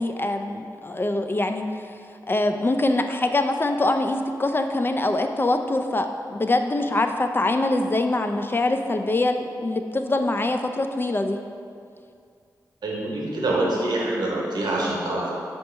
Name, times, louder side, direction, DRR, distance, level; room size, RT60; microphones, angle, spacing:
voice 1, 0.0-1.6 2.3-11.4, left 2 dB, 30° left, 6 dB, 0.3 m, -24 dB
voice 2, 12.8-15.3, right 2 dB, 75° right, -3 dB, 0.8 m, -25 dB
4.3 x 2.8 x 4.3 m, 2.3 s
cardioid pair, 40°, 7 cm